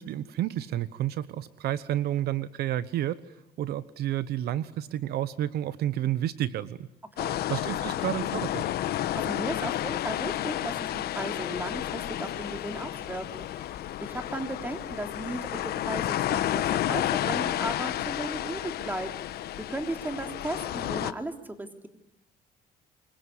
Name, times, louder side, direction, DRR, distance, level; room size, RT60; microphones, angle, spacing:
voice 1, 0.0-3.2 3.6-6.9 7.5-8.6, right 12 dB, 70° right, 15 dB, 1.1 m, -30 dB
sound 1, 7.2-21.1, left 13 dB, 70° left, 1.2 m, -31 dB
voice 2, 9.1-18.6 18.8-19.1 19.6-21.9, right 1 dB, 10° right, 6 dB, 3.4 m, -36 dB
26.0 x 23.0 x 9.7 m, 0.85 s
cardioid pair, 110°, 17 cm